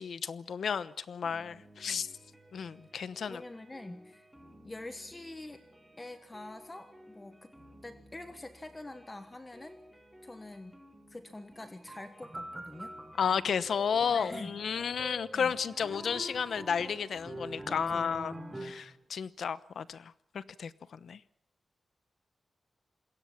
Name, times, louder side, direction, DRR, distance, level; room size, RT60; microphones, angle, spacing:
voice 1, 0.0-2.1 2.5-3.4 13.2-18.4 18.6-21.2, left 7 dB, 75° left, 15 dB, 1.0 m, -33 dB
sound 1, 1.2-18.6, equal, ahead, 4.2 m, -57 dB
voice 2, 3.3-4.3 4.6-5.6 6.0-7.5 7.8-9.8 10.2-10.8 11.1-12.9 14.1-14.6 15.3-15.5 17.7-18.1 18.5-18.8, left 2 dB, 20° left, 9 dB, 1.3 m, -45 dB
sound 2, 11.9-18.9, right 1 dB, 15° right, 3.8 m, -44 dB
27.0 x 22.0 x 5.9 m, 0.69 s
wide cardioid pair, 145°, 0 cm